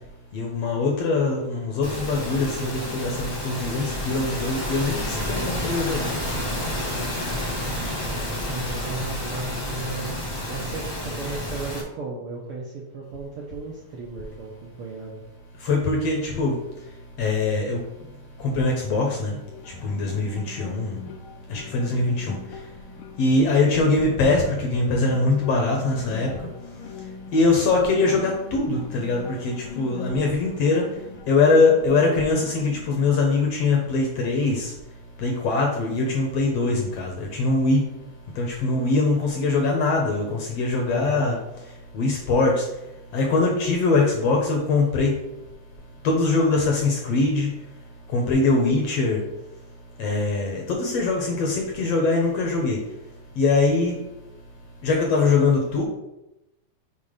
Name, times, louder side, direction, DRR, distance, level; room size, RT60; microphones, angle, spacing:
voice 1, 0.3-6.1 15.6-16.6 17.2-17.8 18.4-19.4 19.6-21.0 21.5-22.6 23.2-26.5 27.3-30.9 31.3-34.7 35.2-37.9 38.4-41.4 41.9-42.7 43.1-45.2 46.0-47.5 48.1-49.2 50.0-52.8 53.4-54.0 54.8-55.8, left 3 dB, 70° left, 1 dB, 1.7 m, -22 dB
voice 2, 1.1-1.7 8.0-10.2 10.5-15.2 40.9-41.3, right 3 dB, 75° right, -2 dB, 1.3 m, -35 dB
sound 1, 1.8-11.8, left 1 dB, 40° left, 1.1 m, -30 dB
sound 2, 19.4-34.4, left 7 dB, 90° left, 2.3 m, -41 dB
5.8 x 4.2 x 5.0 m, 0.92 s
omnidirectional pair, 3.6 m